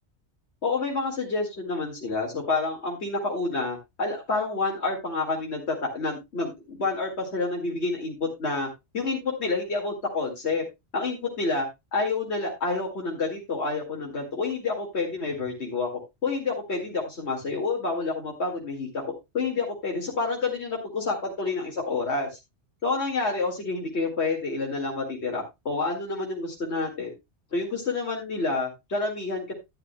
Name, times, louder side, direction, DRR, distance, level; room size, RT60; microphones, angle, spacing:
voice 1, 0.6-8.7 8.9-10.6 10.9-15.9 16.2-19.0 19.3-22.4 22.8-27.1 27.5-29.5, left 3 dB, 75° left, -1 dB, 2.5 m, -28 dB
11.5 x 10.0 x 2.3 m, 0.22 s
omnidirectional pair, 1.1 m